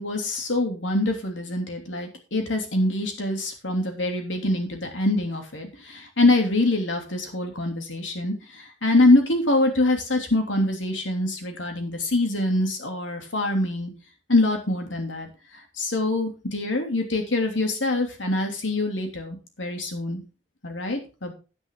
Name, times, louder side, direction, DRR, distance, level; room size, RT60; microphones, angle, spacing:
voice 1, 0.0-13.9 14.3-15.3 15.8-20.2 20.6-21.3, left 2 dB, 80° left, 4 dB, 3.0 m, -24 dB
10.0 x 9.9 x 3.8 m, 0.32 s
head